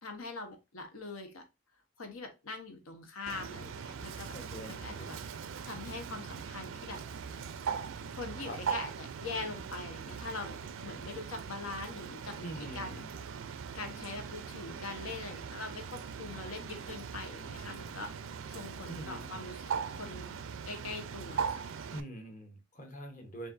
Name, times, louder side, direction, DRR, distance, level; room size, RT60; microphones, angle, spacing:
voice 1, 0.0-1.4 2.0-4.3 4.7-7.0 8.1-10.6 10.8-12.5 12.7-13.0 13.7-18.1 18.5-19.6 19.9-20.4 20.7-21.7, left 3 dB, 90° left, 1.0 m, -42 dB
Bird, 3.3-22.0, right 6 dB, 70° right, 0.4 m, -40 dB
voice 2, 4.3-5.1 8.4-8.8 12.4-13.1 18.9-19.4 21.9-23.5, right 1 dB, 40° left, 0.9 m, -44 dB
6.3 x 2.6 x 2.5 m
head